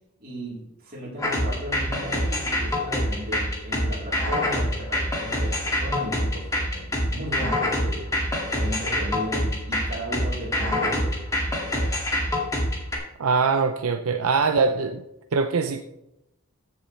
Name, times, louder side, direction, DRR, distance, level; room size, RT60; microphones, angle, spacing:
voice 1, 0.2-8.1 8.5-11.2, equal, 45° right, -4 dB, 3.6 m, -35 dB
sound 1, 1.2-13.0, left 1 dB, 15° left, 2.1 m, -25 dB
voice 2, 13.2-15.0 15.3-15.8, right 4 dB, 80° right, 6 dB, 0.6 m, -22 dB
15.0 x 7.1 x 3.3 m, 0.86 s
head